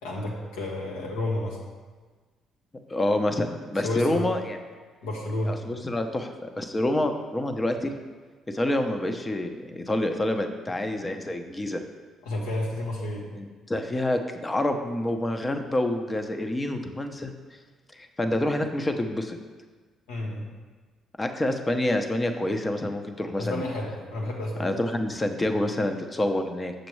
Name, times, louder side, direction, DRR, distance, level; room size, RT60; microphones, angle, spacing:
voice 1, 0.0-1.6 3.8-4.2 5.0-5.6 12.2-13.3 20.1-20.5 23.4-24.7, left 1 dB, 80° left, -2 dB, 1.2 m, -30 dB
voice 2, 2.9-4.6 5.4-7.9 8.5-11.8 13.4-17.3 17.9-19.4 21.2-23.6 24.6-26.7, left 1 dB, 25° left, 6 dB, 0.7 m, -27 dB
6.8 x 6.4 x 3.2 m, 1.4 s
hypercardioid pair, 50°, 0 cm